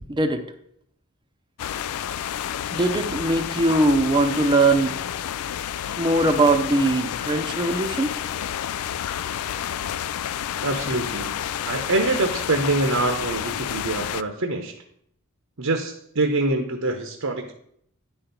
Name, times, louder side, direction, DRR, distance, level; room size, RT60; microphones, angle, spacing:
voice 1, 0.1-0.4 2.7-4.9 6.0-8.1, right 2 dB, 20° right, 7 dB, 0.7 m, -21 dB
sound 1, 1.6-14.2, left 10 dB, 85° left, 0.4 m, -30 dB
voice 2, 10.6-11.4 11.6-14.7 15.6-17.5, right 2 dB, 70° right, 5 dB, 0.9 m, -25 dB
10.0 x 4.4 x 5.3 m, 0.70 s
head